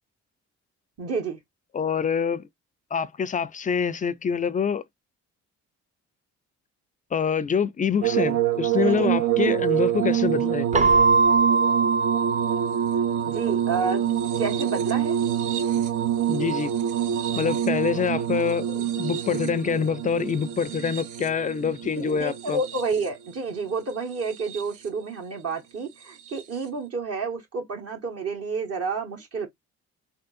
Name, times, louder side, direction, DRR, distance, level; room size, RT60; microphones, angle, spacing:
voice 1, 1.0-1.4 8.8-9.1 9.4-9.6 13.2-14.0 14.4-15.2 21.9-29.5, right 4 dB, 50° right, 1.3 m, -30 dB
voice 2, 1.7-2.4 2.9-4.8 7.1-10.7 16.3-16.7 17.4-22.6, left 6 dB, 25° left, 0.3 m, -26 dB
sound 1, 8.0-23.3 24.1-24.8 26.3-26.4, right 10 dB, 80° right, 0.7 m, -26 dB
Keyboard (musical), 10.7-13.5, right 4 dB, 25° right, 0.5 m, -22 dB
3.6 x 2.3 x 2.5 m
cardioid pair, 90°, 30 cm